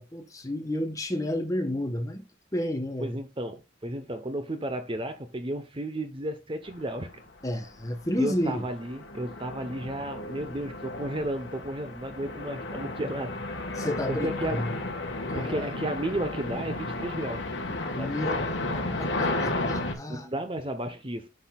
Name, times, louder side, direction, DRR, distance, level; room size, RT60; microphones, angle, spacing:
voice 1, 0.0-2.2 2.5-3.2 7.4-8.7 13.7-14.8 15.3-15.7 17.9-18.4 19.0-20.3, left 1 dB, 15° left, 1.3 m, -31 dB
voice 2, 3.0-7.1 8.2-13.7 14.1-14.7 15.3-17.5 18.0-18.2 20.1-21.3, right 1 dB, 25° right, 0.9 m, -33 dB
sound 1, 6.9-7.1 7.6-19.9, left 2 dB, 65° left, 1.7 m, -33 dB
10.0 x 6.3 x 2.4 m
head